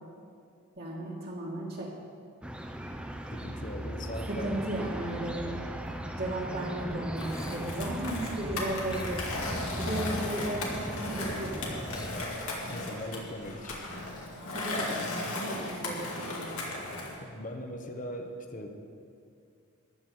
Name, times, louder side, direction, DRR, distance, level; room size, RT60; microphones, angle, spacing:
voice 1, 0.8-1.9 4.3-5.5 6.1-9.4 9.8-11.7 14.5-16.5, right 1 dB, 45° right, -5 dB, 1.7 m, -35 dB
sound 1, 2.4-12.1, equal, 5° right, 0.6 m, -38 dB
voice 2, 3.3-4.7 12.7-13.8 17.2-18.7, equal, 35° left, 4 dB, 1.0 m, -40 dB
Skateboard, 7.2-17.2, left 2 dB, 85° left, 2.3 m, -36 dB
13.5 x 5.5 x 9.4 m, 2.3 s
head